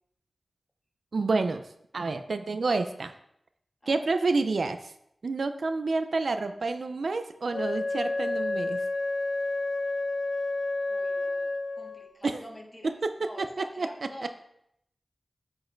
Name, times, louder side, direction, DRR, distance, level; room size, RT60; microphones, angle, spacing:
voice 1, 1.1-1.6 1.9-3.1 3.9-4.9 5.2-8.8 12.2-12.4 12.8-13.9, right 3 dB, 75° right, 9 dB, 0.5 m, -29 dB
Wind instrument woodwind instrument, 7.5-12.2, left 2 dB, 90° left, 0.7 m, -30 dB
voice 2, 10.9-11.5 11.8-14.3, equal, 20° left, 0 dB, 1.8 m, -46 dB
7.5 x 4.7 x 4.5 m, 0.74 s
cardioid pair, 45°, 0 cm